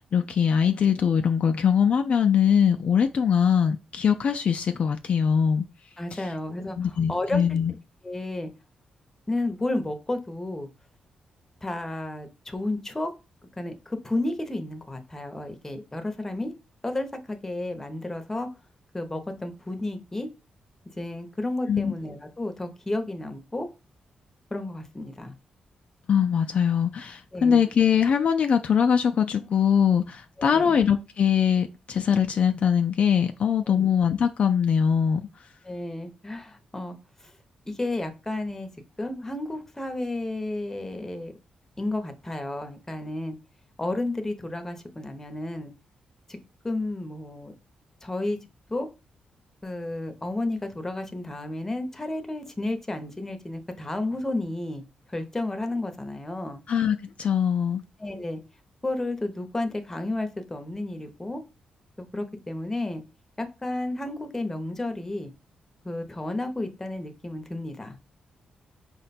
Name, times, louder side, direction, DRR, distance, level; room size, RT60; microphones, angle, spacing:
voice 1, 0.0-5.6 6.8-7.7 21.7-21.9 26.1-35.2 56.7-57.8, left 7 dB, 55° left, 0.3 m, -22 dB
voice 2, 6.0-7.6 8.0-8.5 9.3-10.7 11.6-13.1 13.6-16.5 16.8-18.5 18.9-20.3 21.0-23.7 24.5-25.3 27.3-27.6 30.4-30.8 33.7-33.9 35.6-37.3 37.7-38.7 39.0-41.3 41.8-43.4 43.8-45.7 46.3-46.4 46.6-47.5 48.0-48.4 48.7-48.9 49.6-54.8 55.1-56.6 58.0-58.4 58.8-61.4 62.0-63.0 63.4-65.3 65.8-68.0, left 2 dB, 15° left, 0.8 m, -32 dB
4.8 x 2.2 x 4.1 m
cardioid pair, 85°, 3 cm